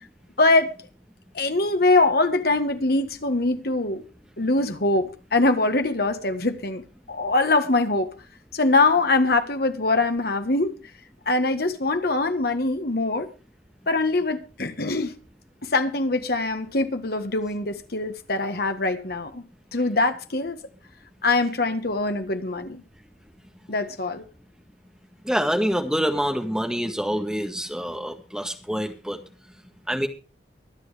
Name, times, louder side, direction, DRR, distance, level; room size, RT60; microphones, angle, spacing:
voice 1, 0.4-0.8 1.3-4.0 4.4-6.8 7.1-8.1 8.5-10.7 11.2-13.3 13.9-15.1 15.6-19.4 19.7-20.6 21.2-22.8 23.7-24.2, left 2 dB, 55° left, 1.6 m, -23 dB
voice 2, 25.2-29.2 29.9-30.1, equal, 5° right, 1.7 m, -26 dB
24.0 x 7.9 x 3.5 m
head